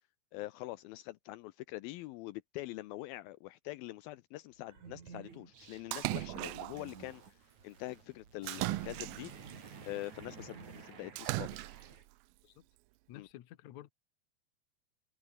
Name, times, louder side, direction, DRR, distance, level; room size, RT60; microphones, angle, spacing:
voice 1, 0.3-7.4 7.6-11.7 13.2-13.3, left 18 dB, 80° left, 2.3 m, -44 dB
sound 1, 4.6-12.0, right 6 dB, 50° right, 4.5 m, -52 dB
Splash splatter, 5.9-6.9 8.5-9.5 11.2-12.0, right 21 dB, 80° right, 2.2 m, -37 dB
voice 2, 13.1-13.9, left 13 dB, 60° left, 2.1 m, -52 dB
omnidirectional pair, 4.6 m